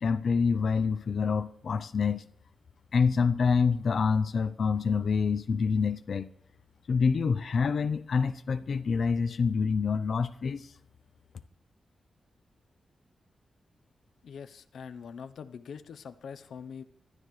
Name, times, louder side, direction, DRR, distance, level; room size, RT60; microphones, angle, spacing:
voice 1, 0.0-2.2 2.9-6.3 6.9-10.7, left 5 dB, 50° left, 11 dB, 0.5 m, -27 dB
voice 2, 14.2-16.8, left 6 dB, 90° left, 11 dB, 0.7 m, -43 dB
24.5 x 12.5 x 3.2 m, 0.67 s
wide cardioid pair, 180°, 0 cm